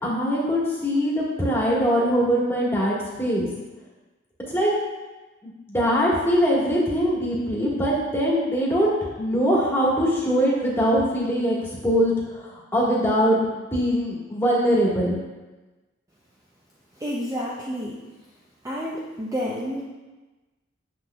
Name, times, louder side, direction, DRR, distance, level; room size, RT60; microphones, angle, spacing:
voice 1, 0.0-3.5 4.5-4.7 5.4-8.9 9.2-15.2, equal, 10° left, -6 dB, 1.4 m, -22 dB
voice 2, 17.0-18.0 18.6-19.8, equal, 15° right, -4 dB, 0.5 m, -29 dB
7.2 x 6.2 x 2.2 m, 1.2 s
head